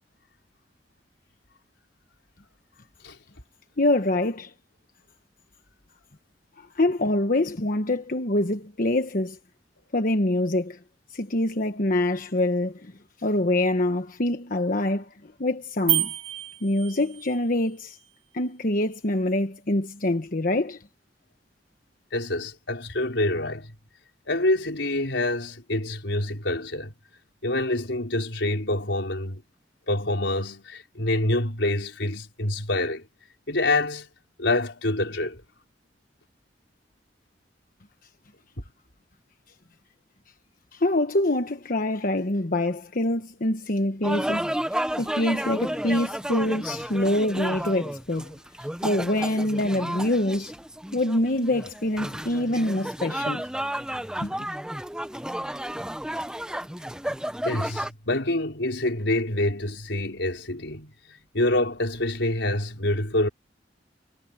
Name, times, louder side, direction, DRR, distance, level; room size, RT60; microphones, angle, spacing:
voice 1, 3.8-4.5 6.6-9.4 9.9-10.8 11.1-12.9 13.2-16.1 16.6-18.0 18.3-20.8 40.7-44.5 45.0-48.3 48.8-50.5 50.9-53.5 54.2-54.3, left 1 dB, 50° left, 1.2 m, -25 dB
sound 1, 15.9-17.4, right 14 dB, 35° right, 3.7 m, -28 dB
voice 2, 22.1-23.7 24.3-26.9 27.4-29.4 29.9-33.0 33.5-34.1 34.4-35.4 57.4-60.9 61.3-63.3, left 1 dB, 80° left, 4.4 m, -26 dB
sound 2, 44.0-57.9, right 1 dB, 5° right, 0.9 m, -32 dB
head